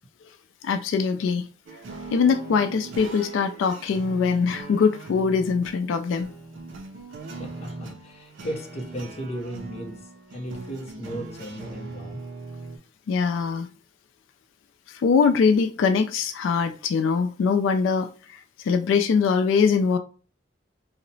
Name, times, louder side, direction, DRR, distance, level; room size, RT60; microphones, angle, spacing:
voice 1, 0.6-1.5 2.1-6.3 13.1-13.7 14.9-20.0, left 5 dB, 80° left, 0.3 m, -22 dB
sound 1, 1.7-12.8, right 3 dB, 80° right, 0.5 m, -40 dB
voice 2, 7.4-10.0 10.3-12.2, right 1 dB, 35° left, 0.6 m, -35 dB
2.8 x 2.0 x 2.6 m
head